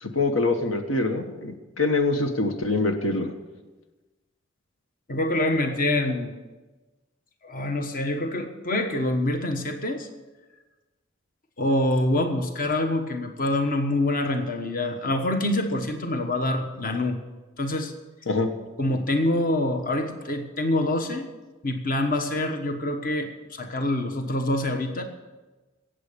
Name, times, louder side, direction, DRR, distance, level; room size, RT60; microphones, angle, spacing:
voice 1, 0.0-3.3 18.3-18.5, left 3 dB, 85° left, 6 dB, 1.3 m, -24 dB
voice 2, 5.1-6.3 7.4-10.1 11.6-17.2 17.6-17.9 18.8-21.3 21.6-25.0, left 1 dB, 45° left, 6 dB, 1.2 m, -26 dB
17.5 x 7.7 x 6.9 m, 1.2 s
head